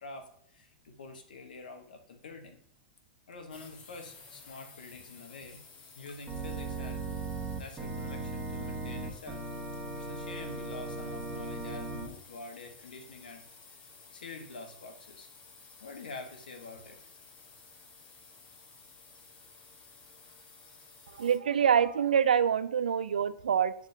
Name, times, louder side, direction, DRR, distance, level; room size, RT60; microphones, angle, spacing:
voice 1, 0.0-2.6 3.3-5.6 6.0-7.0 7.6-9.4 9.9-13.4 14.1-15.3 15.8-17.0, left 3 dB, 80° left, 5 dB, 1.3 m, -46 dB
sound 1, 3.5-21.4, left 4 dB, 35° left, 1.4 m, -54 dB
Organ, 6.3-12.1, right 3 dB, 15° right, 1.2 m, -37 dB
voice 2, 21.1-23.7, right 8 dB, 85° right, 15 dB, 0.4 m, -26 dB
10.5 x 3.6 x 2.8 m, 0.72 s
hypercardioid pair, 115°, 5 cm